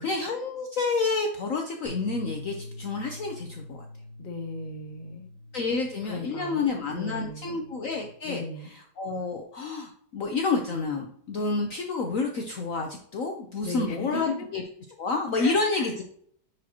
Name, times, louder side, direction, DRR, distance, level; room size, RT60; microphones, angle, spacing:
voice 1, 0.0-3.8 5.5-8.4 9.0-14.6 15.0-16.0, left 3 dB, 55° left, 3 dB, 1.0 m, -29 dB
sound 1, 1.8-8.1, left 1 dB, 25° right, 2.8 m, -44 dB
voice 2, 4.2-5.3 6.0-7.6 8.2-8.7 13.6-14.5 15.4-15.9, left 3 dB, 30° left, 3 dB, 1.0 m, -36 dB
10.0 x 5.0 x 2.9 m, 0.64 s
omnidirectional pair, 1.9 m